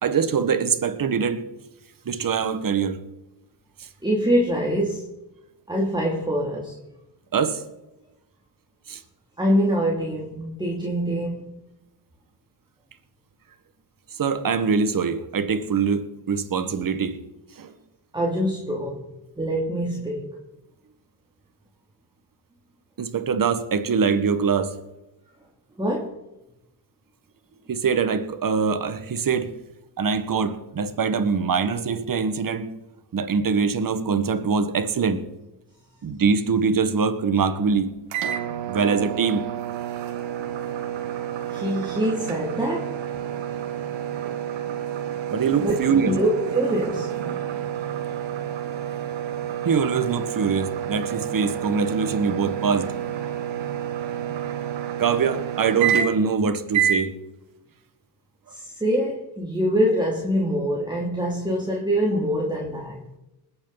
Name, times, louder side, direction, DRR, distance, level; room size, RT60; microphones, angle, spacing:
voice 1, 0.0-1.4 2.0-3.0 3.8-3.9 7.3-7.6 8.9-9.0 14.2-17.2 17.6-17.7 23.0-24.7 27.7-29.5 30.0-32.7 33.1-35.2 36.0-37.9 38.7-39.4 45.3-46.1 49.6-52.9 55.0-57.1, right 5 dB, 45° right, 10 dB, 1.7 m, -23 dB
voice 2, 4.0-5.1 5.7-6.8 9.4-11.5 18.1-19.0 19.4-20.3 25.8-26.2 41.5-43.0 45.6-45.8 46.0-47.1 58.5-63.0, equal, 10° right, -3 dB, 2.8 m, -24 dB
sound 1, 38.1-56.3 56.7-57.1, right 10 dB, 85° right, 1.7 m, -29 dB
20.5 x 8.8 x 4.1 m, 0.97 s
cardioid pair, 80°, 45 cm